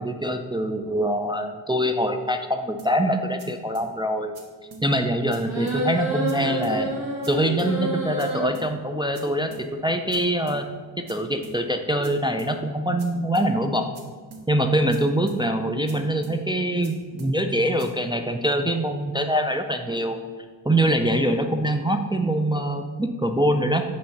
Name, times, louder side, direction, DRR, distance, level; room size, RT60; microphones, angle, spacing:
voice 1, 0.0-4.3 4.8-6.9 7.3-10.6 11.0-13.8 14.5-20.2 20.7-23.8, right 1 dB, 10° right, 5 dB, 0.3 m, -24 dB
sound 1, 2.8-2.9 3.4-3.5 3.7-3.9 4.3-4.4 4.7-4.8 5.3-5.4 5.7-5.8 6.3-6.4 6.6-6.8 7.2-7.3 7.6-7.7 8.2-8.3 8.5-8.7 9.1-9.2 9.5-9.6 10.1-10.2 10.5-10.6 11.1-11.2 11.4-11.6 12.0-12.1 12.4-12.5 13.0-13.1 13.3-13.5 13.9-14.0 14.3-14.4 14.9-15.0 15.3-15.4 15.9-16.0 16.2-16.4 16.8-16.9 17.2-17.3 17.8-17.9, right 3 dB, 60° right, 1.1 m, -43 dB
sound 2, 5.4-8.5, right 1 dB, 85° right, 1.7 m, -28 dB
7.0 x 3.1 x 5.7 m, 1.5 s
wide cardioid pair, 100°, 43 cm